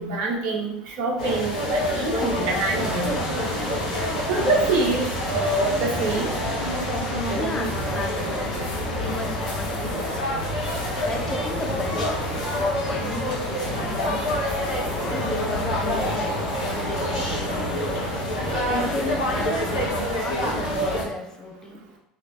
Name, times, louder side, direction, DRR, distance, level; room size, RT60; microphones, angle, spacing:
voice 1, 0.0-3.1 4.3-6.3, right 2 dB, 50° right, 0 dB, 1.1 m, -25 dB
sound 1, 1.2-21.0, equal, 80° left, 1.3 m, -27 dB
sound 2, 2.7-20.0, left 2 dB, 35° left, 1.6 m, -35 dB
voice 2, 7.3-8.7 9.0-10.2 11.0-12.2 12.5-14.5 15.1-16.4 16.6-17.9 18.6-21.8, left 2 dB, 15° left, 1 dB, 0.9 m, -34 dB
4.4 x 3.0 x 3.9 m, 0.79 s
figure-of-eight pair, 70°, 4 cm